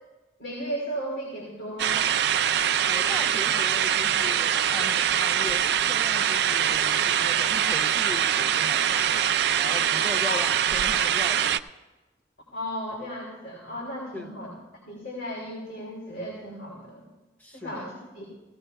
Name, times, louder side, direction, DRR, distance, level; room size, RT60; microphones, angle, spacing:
voice 1, 0.4-2.0 10.3-10.5 12.5-14.5 14.9-17.0 17.5-18.2, equal, 65° left, -5 dB, 3.2 m, -35 dB
sound 1, 1.8-11.6, right 9 dB, 65° right, 0.4 m, -23 dB
voice 2, 2.8-9.3 9.6-11.6 14.1-14.5 17.4-17.9, left 2 dB, 10° left, 4 dB, 0.6 m, -39 dB
17.0 x 16.5 x 2.3 m, 1.2 s
head